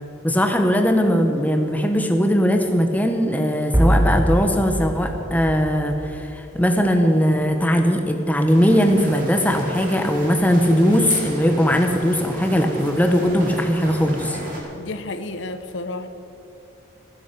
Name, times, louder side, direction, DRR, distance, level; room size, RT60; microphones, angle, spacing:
voice 1, 0.2-14.4, equal, 10° left, 5 dB, 0.9 m, -19 dB
sound 1, 3.7-6.6, right 1 dB, 10° right, 0.4 m, -22 dB
sound 2, 8.5-14.6, equal, 40° right, 2.8 m, -34 dB
voice 2, 14.8-16.1, left 2 dB, 60° left, 10 dB, 0.7 m, -31 dB
15.5 x 10.0 x 6.7 m, 2.9 s
head